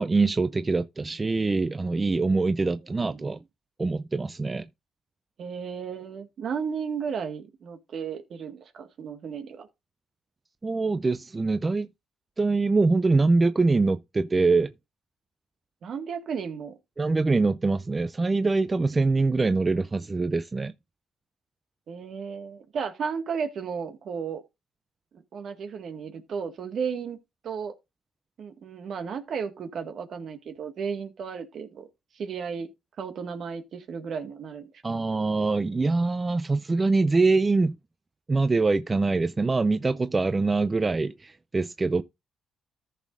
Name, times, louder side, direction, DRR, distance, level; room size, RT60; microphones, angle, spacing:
voice 1, 0.0-3.4 3.8-4.7 10.6-11.9 12.4-14.7 17.0-20.7 34.8-37.8 38.3-42.0, right 3 dB, 25° right, 0.4 m, -24 dB
voice 2, 5.4-9.7 15.8-16.7 21.9-24.4 25.3-27.2 27.4-27.7 28.4-31.9 32.1-32.7 33.0-34.7, right 6 dB, 60° right, 1.7 m, -34 dB
14.0 x 6.3 x 2.5 m
cardioid pair, 90°, 0 cm